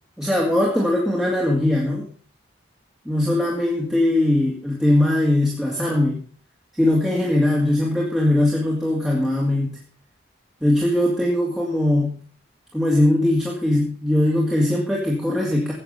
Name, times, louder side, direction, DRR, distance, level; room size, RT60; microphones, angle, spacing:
voice 1, 0.2-2.1 3.1-6.2 6.8-9.8 10.6-12.1 12.7-15.7, left 1 dB, 5° right, -4 dB, 2.2 m, -20 dB
14.5 x 8.7 x 5.5 m, 0.43 s
head